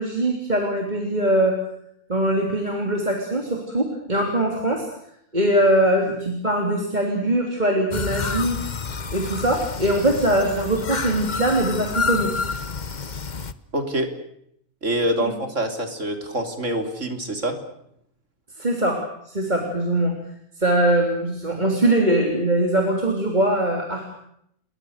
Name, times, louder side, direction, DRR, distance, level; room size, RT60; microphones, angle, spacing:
voice 1, 0.0-1.6 2.1-4.9 5.3-8.6 9.1-12.4 15.2-15.3 18.6-20.2 20.6-24.1, right 1 dB, 35° right, 1 dB, 3.5 m, -22 dB
sound 1, 7.9-13.5, left 5 dB, 35° left, 1.1 m, -29 dB
voice 2, 13.7-14.1 14.8-17.6, right 1 dB, 65° right, 5 dB, 3.8 m, -25 dB
29.5 x 22.5 x 6.6 m, 0.73 s
omnidirectional pair, 1.4 m